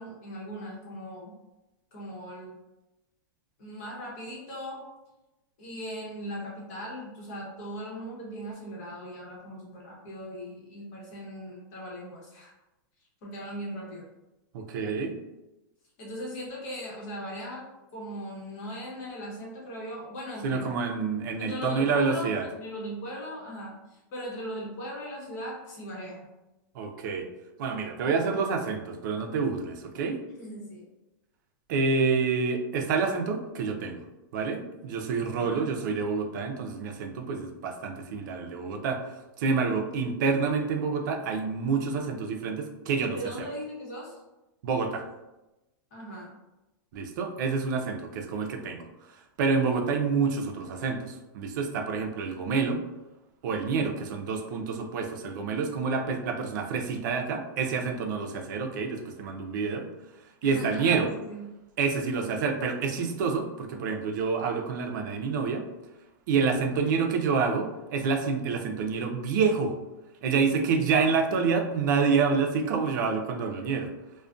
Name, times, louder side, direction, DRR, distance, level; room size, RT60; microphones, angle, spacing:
voice 1, 0.0-1.4 1.9-2.6 3.6-4.8 5.6-12.5 13.2-14.0 16.0-17.7 17.9-20.7 21.4-26.3 30.4-30.8 35.4-35.7 43.1-44.2 45.9-46.3 60.4-61.5 66.8-66.9, equal, 45° left, -4 dB, 1.0 m, -39 dB
voice 2, 14.5-15.1 20.4-22.5 26.7-27.3 27.6-30.2 31.7-34.0 34.3-43.5 44.6-45.0 46.9-52.8 53.4-59.9 60.4-61.1 61.8-65.7 66.3-69.8 70.2-73.9, right 5 dB, 60° right, 3 dB, 0.4 m, -28 dB
2.3 x 2.1 x 2.4 m, 1.0 s
supercardioid pair, 155°, 11 cm